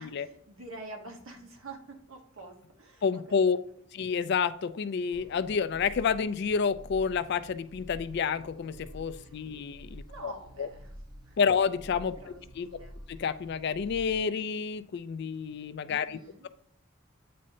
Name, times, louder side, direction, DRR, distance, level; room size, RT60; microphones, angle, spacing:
voice 1, 0.0-3.5 10.1-10.9 11.2-11.5 12.1-13.0 15.9-16.5, right 2 dB, 80° right, 3 dB, 1.3 m, -47 dB
voice 2, 3.0-3.6 3.9-10.3 10.6-10.7 11.4-12.7 13.1-16.5, left 6 dB, 55° left, 12 dB, 0.4 m, -29 dB
sound 1, 5.1-14.3, equal, 20° right, 0.5 m, -49 dB
8.5 x 4.2 x 2.7 m, 0.67 s
head